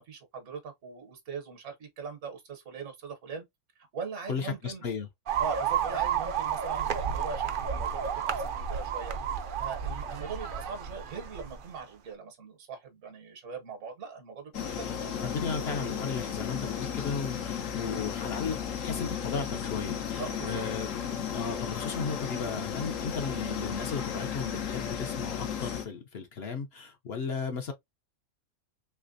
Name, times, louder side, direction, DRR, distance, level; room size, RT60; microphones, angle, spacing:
voice 1, 0.0-3.4 3.8-4.8 5.4-15.0 20.2-20.6, right 5 dB, 70° right, 1.3 m, -41 dB
voice 2, 4.3-5.1 15.2-20.9 21.3-27.7, left 5 dB, 60° left, 0.8 m, -35 dB
sound 1, 5.3-11.6, right 8 dB, 55° right, 0.6 m, -31 dB
sound 2, 14.5-25.9, left 8 dB, 85° left, 1.1 m, -34 dB
3.3 x 3.2 x 2.5 m
omnidirectional pair, 1.3 m